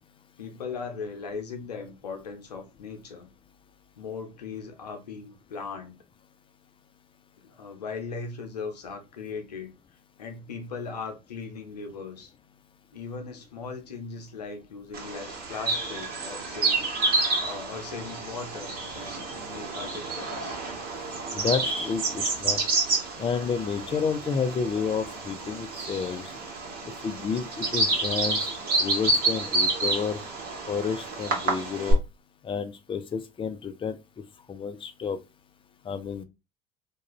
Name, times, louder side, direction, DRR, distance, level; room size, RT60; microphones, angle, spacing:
voice 1, 0.4-3.3 4.0-6.0 7.4-9.7 10.2-12.3 12.9-20.6, left 4 dB, 85° left, 0.7 m, -38 dB
Bird vocalization bird call bird song, 14.9-31.9, right 3 dB, 50° right, 1.2 m, -29 dB
voice 2, 21.3-22.6 23.2-26.4 27.0-28.4 28.8-30.2 30.7-32.0 32.4-34.0 34.5-35.2 35.8-36.2, left 6 dB, 25° left, 0.5 m, -30 dB
2.4 x 2.2 x 2.9 m
hypercardioid pair, 70°, 20 cm